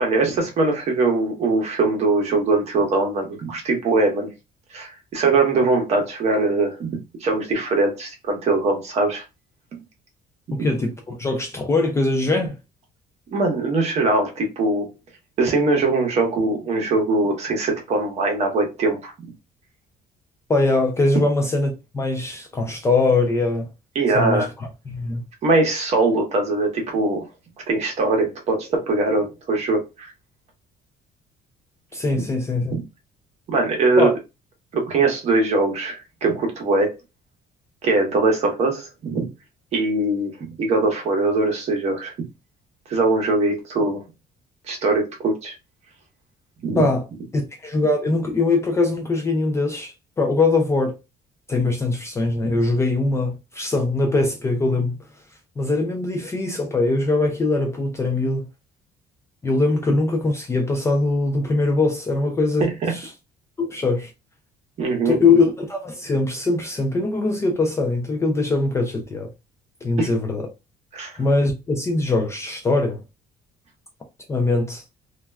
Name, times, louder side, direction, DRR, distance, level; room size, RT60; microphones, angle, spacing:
voice 1, 0.0-4.3 4.7-9.2 13.3-14.9 15.4-19.1 23.9-24.5 25.4-27.3 27.7-30.1 32.7-32.8 33.5-34.1 34.7-36.9 37.8-39.3 39.7-40.3 40.6-42.1 42.9-44.0 44.7-45.5 46.6-46.9 62.6-62.9 64.8-65.2 70.0-70.1 70.9-71.2, right 3 dB, 45° right, 0.8 m, -21 dB
voice 2, 10.5-12.6 20.5-23.7 24.1-25.2 31.9-32.7 34.0-34.1 46.8-47.0 47.3-51.0 51.5-55.0 55.6-58.5 59.4-63.1 63.6-64.1 65.1-69.3 69.8-70.5 71.2-73.0 74.3-74.8, left 3 dB, 15° left, 0.3 m, -22 dB
2.3 x 2.1 x 3.2 m
cardioid pair, 170°, 16 cm